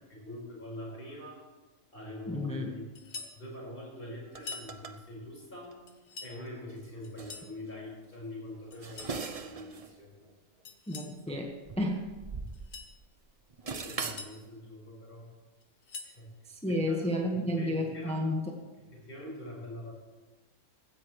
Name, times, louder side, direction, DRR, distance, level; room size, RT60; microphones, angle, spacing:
voice 1, 0.1-1.4 1.9-2.8 3.1-5.8 6.2-10.1 13.6-15.3 16.0-16.3 16.7-18.2 18.9-19.9, left 1 dB, 40° left, -3 dB, 5.1 m, -44 dB
voice 2, 2.3-2.7 10.9-12.1 16.5-18.5, left 1 dB, 5° left, 1 dB, 1.3 m, -31 dB
sound 1, 2.9-3.4 4.3-4.7 5.9-6.4 7.0-7.5 8.7-9.2 10.6-11.2 12.5-12.9 13.8-14.3 15.6-16.2, left 4 dB, 70° left, 1.5 m, -45 dB
sound 2, 4.3-5.0 5.6-5.7 6.7-6.8 7.2-7.4 8.5-10.0 10.2-10.3 11.3-13.0 13.3-14.3, right 4 dB, 40° right, 0.5 m, -40 dB
16.0 x 15.0 x 3.2 m, 1.2 s
omnidirectional pair, 1.4 m